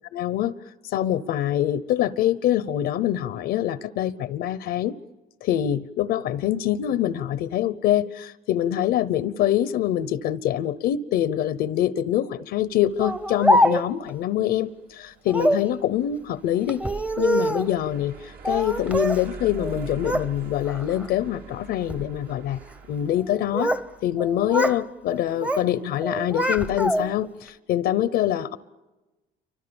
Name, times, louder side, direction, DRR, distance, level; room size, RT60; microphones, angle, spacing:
voice 1, 0.1-0.5 0.8-4.9 5.4-16.8 17.2-22.6 22.9-23.7 24.0-28.6, left 11 dB, 80° left, 15 dB, 0.8 m, -25 dB
sound 1, 12.6-24.8, right 5 dB, 65° right, 2.3 m, -45 dB
Speech, 13.0-14.1 15.3-15.7 16.7-17.7 18.4-19.2 19.6-20.3 20.7-21.1 21.7-22.1 23.2-23.9 24.2-24.8 25.1-25.7 26.0-27.3, equal, 5° right, 0.8 m, -24 dB
29.0 x 25.0 x 7.1 m, 1.1 s
cardioid pair, 110°, 17 cm